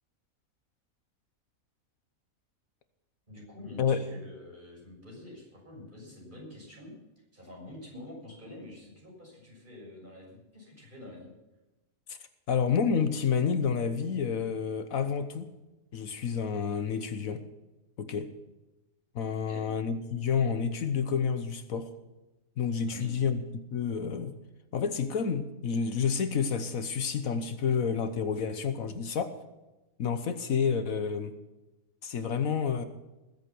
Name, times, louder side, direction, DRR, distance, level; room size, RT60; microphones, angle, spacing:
voice 1, 3.3-6.9 7.3-11.3 19.5-19.7 22.9-23.3, left 2 dB, 35° right, -2 dB, 6.8 m, -47 dB
voice 2, 12.5-15.5 15.9-17.4 18.0-18.3 19.1-21.9 22.6-23.4 23.7-24.3 24.7-29.3 30.0-31.3 32.0-32.8, left 6 dB, 70° left, 10 dB, 1.4 m, -29 dB
20.5 x 8.1 x 6.1 m, 1.0 s
omnidirectional pair, 1.5 m